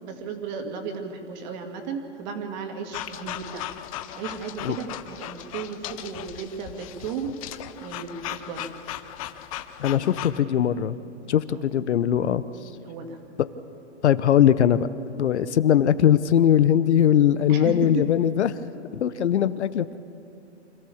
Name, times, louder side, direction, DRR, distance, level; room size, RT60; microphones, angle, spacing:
voice 1, 0.0-3.7 4.1-7.5 7.8-8.7 11.5-11.6 12.8-13.2 17.5-18.0, right 6 dB, 40° right, 4 dB, 2.5 m, -34 dB
sound 1, 2.9-10.4, left 12 dB, 30° left, 0.7 m, -37 dB
voice 2, 9.8-11.0 11.3-12.4 14.0-14.9 15.2-18.5 18.9-20.0, left 10 dB, 70° left, 15 dB, 0.9 m, -20 dB
26.0 x 14.0 x 7.2 m, 2.8 s
hypercardioid pair, 145°, 36 cm